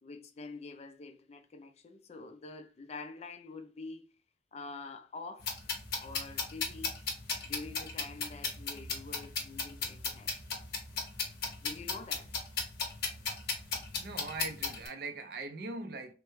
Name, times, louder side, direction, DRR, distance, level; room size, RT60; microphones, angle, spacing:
voice 1, 0.0-4.1 4.5-5.5 6.0-7.0 7.4-10.3 11.6-12.3, left 3 dB, 35° left, 0.3 m, -46 dB
sound 1, 5.4-14.9, left 4 dB, 55° left, 0.9 m, -36 dB
voice 2, 14.0-16.1, right 3 dB, 50° right, 0.5 m, -40 dB
3.2 x 2.1 x 3.0 m
head